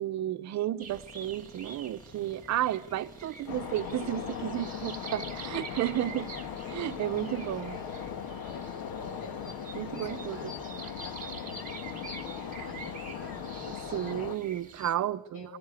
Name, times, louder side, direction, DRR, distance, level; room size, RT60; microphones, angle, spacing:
voice 1, 0.0-6.3 6.7-7.8 9.7-10.5 13.9-15.6, right 13 dB, 50° right, 0.8 m, -32 dB
sound 1, 0.8-14.9, right 4 dB, 25° right, 1.9 m, -47 dB
sound 2, 0.9-10.1, left 1 dB, 10° left, 1.0 m, -54 dB
sound 3, 3.5-14.4, left 7 dB, 80° left, 1.6 m, -39 dB
voice 2, 7.2-8.1 8.4-14.2 15.3-15.6, left 2 dB, 60° left, 6.9 m, -50 dB
23.5 x 18.5 x 8.2 m
cardioid pair, 135°, 35 cm